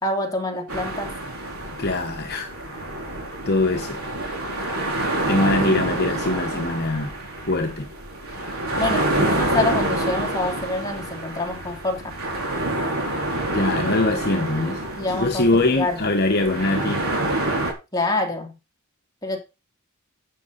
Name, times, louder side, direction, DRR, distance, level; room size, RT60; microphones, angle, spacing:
voice 1, 0.0-1.1 8.8-12.2 15.0-16.0 17.9-18.5 19.2-19.4, left 2 dB, 15° left, 3.0 m, -26 dB
sound 1, 0.7-17.7, right 1 dB, 70° right, 4.4 m, -27 dB
voice 2, 1.8-2.5 3.5-4.0 5.3-7.1 7.5-7.9 13.5-14.8 15.1-17.0, left 2 dB, 45° left, 1.2 m, -22 dB
11.5 x 8.7 x 4.1 m
head